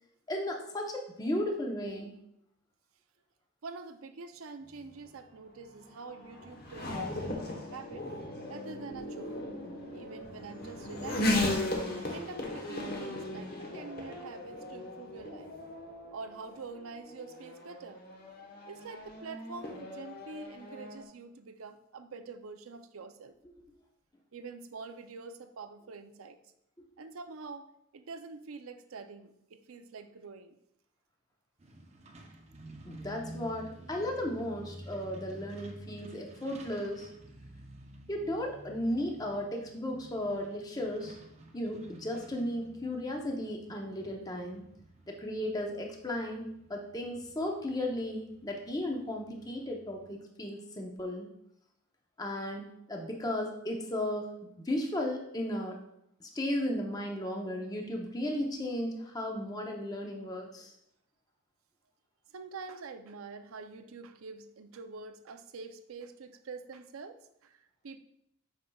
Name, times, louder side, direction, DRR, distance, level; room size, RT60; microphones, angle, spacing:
voice 1, 0.3-2.1 32.8-37.1 38.1-41.2 41.5-44.6 45.1-51.3 52.2-55.8 56.2-60.7, left 1 dB, 20° left, 1 dB, 0.8 m, -35 dB
voice 2, 3.6-8.1 8.5-9.4 9.9-11.5 11.9-15.6 16.1-18.0 18.7-23.4 24.3-26.4 27.0-30.6 62.3-68.0, right 4 dB, 85° right, 9 dB, 0.5 m, -46 dB
Race car auto racing / Accelerating revving vroom, 4.8-21.0, left 1 dB, 50° left, 1.1 m, -37 dB
Truck, 31.6-50.1, right 1 dB, 30° right, 0.7 m, -52 dB
8.5 x 5.5 x 2.3 m, 0.77 s
head